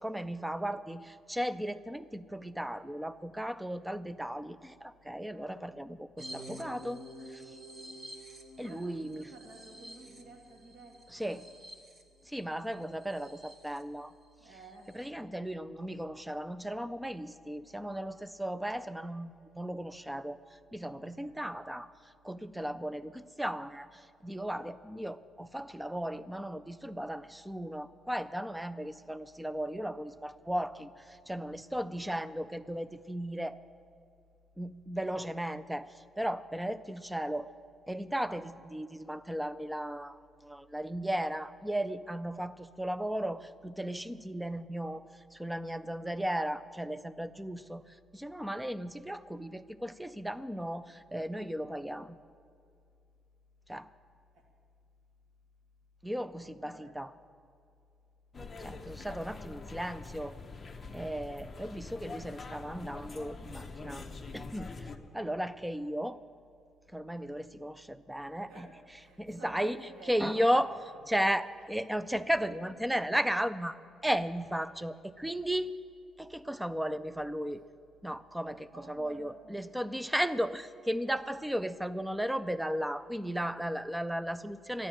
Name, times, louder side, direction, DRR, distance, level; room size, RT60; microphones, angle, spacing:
voice 1, 0.0-7.5 8.6-9.3 11.1-11.4 12.2-14.1 14.9-21.9 22.2-33.6 34.6-37.5 37.9-52.2 53.7-53.9 56.0-57.1 58.6-60.4 60.9-64.1 64.3-66.2 66.9-68.7 69.2-69.8 70.1-70.7 71.1-75.8 76.2-77.6 78.0-84.9, equal, 5° right, 15 dB, 0.3 m, -35 dB
voice 2, 5.3-5.7 8.6-11.4 14.4-15.0 21.2-21.5 54.3-54.5 56.6-56.9 65.1-65.4 68.5-70.7 72.1-72.9 78.7-79.7, right 2 dB, 60° right, 2 dB, 2.3 m, -53 dB
sound 1, 6.2-13.8 14.2-14.3 14.6-15.1, equal, 25° right, 1.1 m, -49 dB
sound 2, 58.3-65.0, left 3 dB, 15° left, 0.8 m, -44 dB
13.5 x 10.5 x 8.8 m, 2.5 s
cardioid pair, 170°, 0 cm